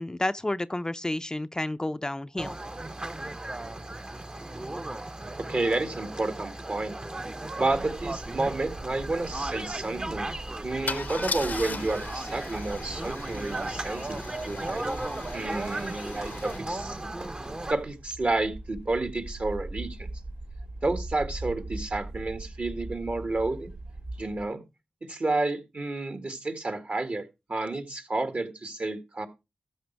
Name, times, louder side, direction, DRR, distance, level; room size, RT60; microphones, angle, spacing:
voice 1, 0.0-2.6, left 1 dB, 20° left, 0.5 m, -30 dB
sound 1, 2.4-17.7, right 2 dB, 30° right, 0.8 m, -36 dB
voice 2, 5.4-7.0 7.6-10.4 10.6-14.2 14.4-15.0 15.3-17.1 17.7-20.1 20.8-23.7 24.2-24.6 25.0-29.3, right 2 dB, 55° right, 1.9 m, -30 dB
sound 2, 7.7-24.4, right 2 dB, 70° right, 4.7 m, -41 dB
Car / Engine starting / Idling, 8.2-8.3 8.6-8.9 10.9-16.6, left 4 dB, 70° left, 0.7 m, -39 dB
13.5 x 5.9 x 4.6 m
cardioid pair, 40°, 3 cm